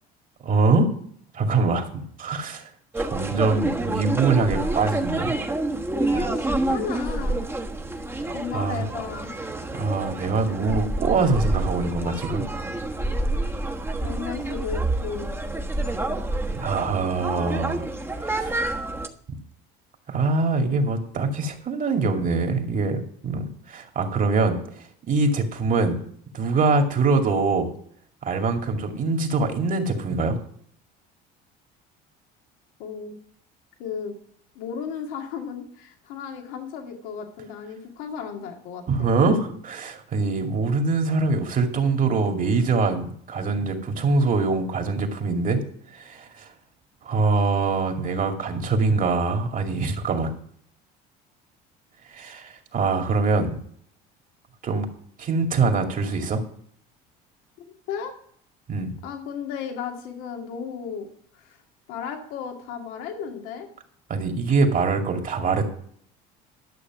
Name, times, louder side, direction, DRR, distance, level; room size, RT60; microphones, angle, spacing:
voice 1, 0.4-0.9 1.3-2.7 3.0-5.4 8.5-8.9 9.7-12.4 16.5-17.8 18.2-18.6 20.1-24.6 25.1-26.0 26.3-27.7 28.2-30.4 38.9-45.6 45.9-46.5 47.0-50.3 52.1-53.6 54.6-54.9 55.2-56.4 58.7-58.9 64.1-65.6, right 3 dB, 40° right, 4 dB, 2.3 m, -23 dB
sound 1, 2.9-19.1, right 2 dB, 10° right, 1.3 m, -28 dB
voice 2, 6.1-7.4 8.3-9.4 14.0-15.3 32.8-33.2 33.8-34.1 34.6-39.1 57.9-58.1 59.0-61.1 61.3-61.6 61.9-63.7, left 7 dB, 80° left, 3 dB, 2.1 m, -34 dB
12.0 x 6.7 x 6.0 m, 0.62 s
supercardioid pair, 95°, 20 cm